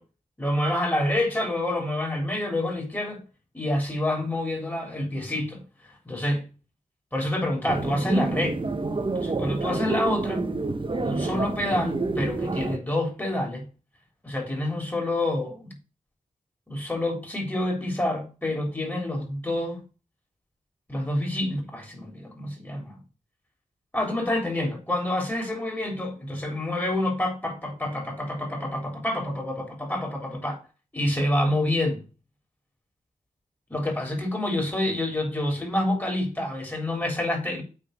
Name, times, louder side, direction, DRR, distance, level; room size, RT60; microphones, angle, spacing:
voice 1, 0.4-3.2 3.5-5.6 6.1-6.4 7.1-8.6 9.2-10.5 10.9-13.6 14.2-15.8 16.7-19.8 20.9-23.0 23.9-30.6 30.9-32.0 33.7-37.6, left 1 dB, 15° left, 3.5 m, -27 dB
sound 1, 7.7-12.8, right 3 dB, 35° right, 1.1 m, -28 dB
9.0 x 4.1 x 5.2 m
cardioid pair, 75°, 15 cm